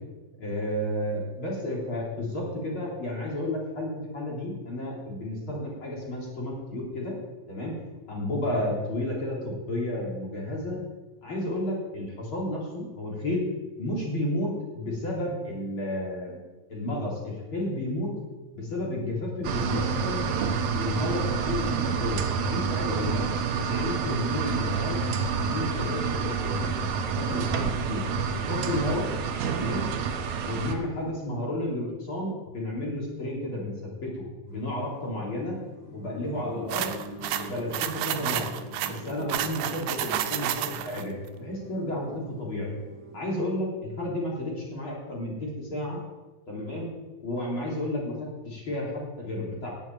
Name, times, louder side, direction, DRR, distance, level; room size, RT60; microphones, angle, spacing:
voice 1, 0.4-7.2 7.5-7.7 8.1-10.8 11.2-13.4 13.8-16.4 16.7-18.1 18.5-20.2 20.7-23.2 23.5-25.0 25.4-28.0 28.3-29.1 29.5-29.9 30.5-35.6 35.9-36.9 37.4-38.6 38.9-42.7 43.1-46.0 46.5-46.9 47.2-49.7, left 1 dB, 35° left, -4 dB, 3.9 m, -32 dB
sound 1, 19.4-30.8, right 6 dB, 65° right, 2.0 m, -28 dB
sound 2, 34.5-43.2, equal, 40° right, 4.0 m, -44 dB
sound 3, 36.7-41.0, right 11 dB, 85° right, 2.5 m, -30 dB
11.0 x 8.6 x 9.1 m, 1.2 s
omnidirectional pair, 4.1 m